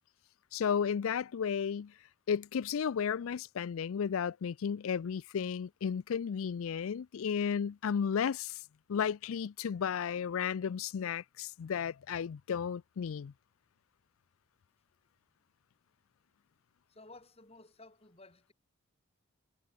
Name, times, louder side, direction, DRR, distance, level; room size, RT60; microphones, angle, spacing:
voice 1, 0.5-1.9 2.3-8.6 8.9-13.3, left 7 dB, 70° left, 0.4 m, -33 dB
voice 2, 16.9-18.5, left 2 dB, 25° left, 4.4 m, -55 dB
head